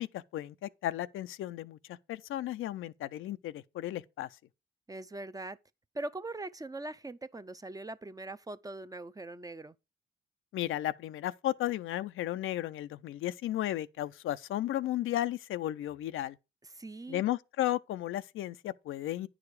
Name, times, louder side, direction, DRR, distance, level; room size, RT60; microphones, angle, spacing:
voice 1, 0.0-4.3 10.5-16.4 17.1-19.3, left 13 dB, 85° left, 0.5 m, -34 dB
voice 2, 4.9-5.6 5.9-9.8 16.6-17.2, right 2 dB, 15° right, 0.5 m, -41 dB
9.5 x 4.9 x 4.7 m
supercardioid pair, 60°, 21 cm